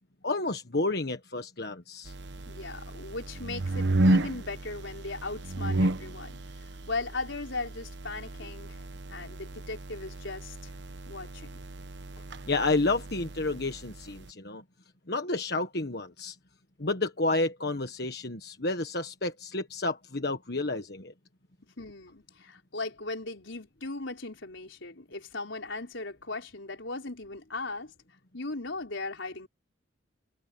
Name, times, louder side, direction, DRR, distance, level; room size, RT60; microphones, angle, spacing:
voice 1, 0.2-2.1 12.5-14.6 15.1-16.4 16.8-21.1, left 2 dB, 55° left, 1.5 m, -30 dB
sound 1, 2.1-14.3, right 1 dB, 65° right, 1.1 m, -33 dB
voice 2, 2.5-10.7 11.1-11.6 21.8-27.9 28.3-29.5, left 3 dB, 75° left, 4.4 m, -38 dB
head